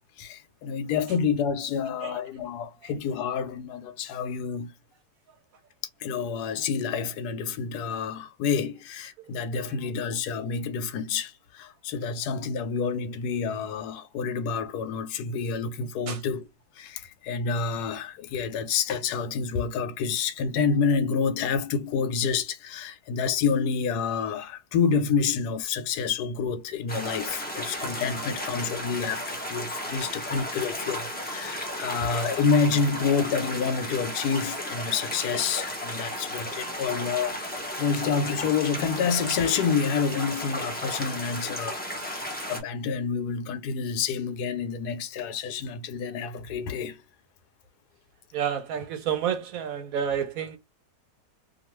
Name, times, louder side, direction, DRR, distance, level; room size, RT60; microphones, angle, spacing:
voice 1, 0.2-4.7 6.0-16.5 16.8-37.4 37.8-47.0, left 6 dB, 85° left, 1.1 m, -28 dB
sound 1, 26.9-42.6, equal, 15° left, 0.3 m, -34 dB
voice 2, 48.3-50.6, right 8 dB, 70° right, 0.9 m, -29 dB
2.6 x 2.3 x 3.0 m
omnidirectional pair, 1.7 m